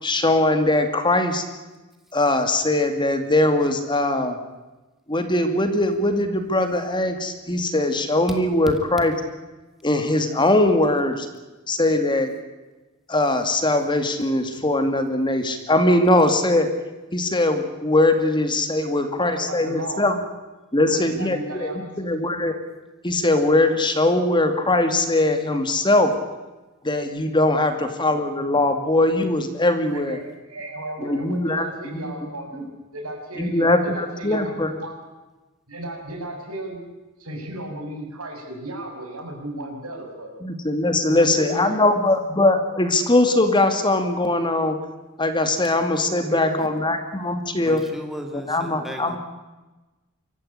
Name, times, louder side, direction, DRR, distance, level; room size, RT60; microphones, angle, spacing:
voice 1, 0.0-1.4 2.1-4.4 5.1-9.1 9.8-11.3 11.7-12.3 13.1-16.7 17.1-20.2 20.7-21.7 22.0-22.6 23.0-26.1 26.8-30.2 31.0-31.7 31.9-32.1 33.4-34.7 40.4-44.8 45.2-47.8 48.5-49.2, left 2 dB, 20° left, 7 dB, 2.3 m, -21 dB
voice 2, 18.9-20.1 20.9-22.0 27.7-27.8 29.9-34.9 35.7-36.9 37.2-40.3 41.1-41.8 46.1-46.7, right 1 dB, 85° right, 2 dB, 6.7 m, -35 dB
voice 3, 47.6-49.2, equal, ahead, 4 dB, 2.4 m, -36 dB
25.5 x 14.5 x 9.9 m, 1.1 s
head